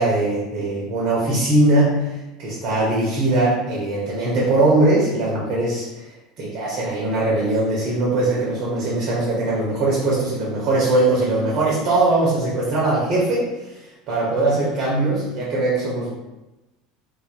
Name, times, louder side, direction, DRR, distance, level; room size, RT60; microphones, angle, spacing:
voice 1, 0.0-2.1 2.4-6.0 6.4-13.5 14.1-16.1, right 2 dB, 45° right, -5 dB, 0.7 m, -20 dB
3.1 x 2.1 x 2.4 m, 1.0 s
figure-of-eight pair, 70°, 0 cm